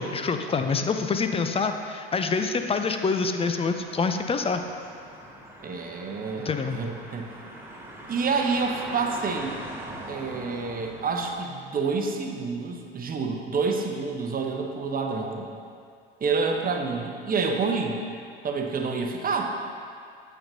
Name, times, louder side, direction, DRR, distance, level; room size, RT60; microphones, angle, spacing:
voice 1, 0.0-4.6 6.4-6.8, left 4 dB, 20° left, 6 dB, 0.5 m, -26 dB
sound 1, 3.4-11.4, right 1 dB, 5° right, 1.1 m, -42 dB
voice 2, 5.6-7.3 8.1-9.6 10.1-15.5 16.2-18.0 18.4-19.6, right 4 dB, 30° right, 3 dB, 0.9 m, -28 dB
8.7 x 7.4 x 2.8 m, 2.3 s
hypercardioid pair, 70°, 30 cm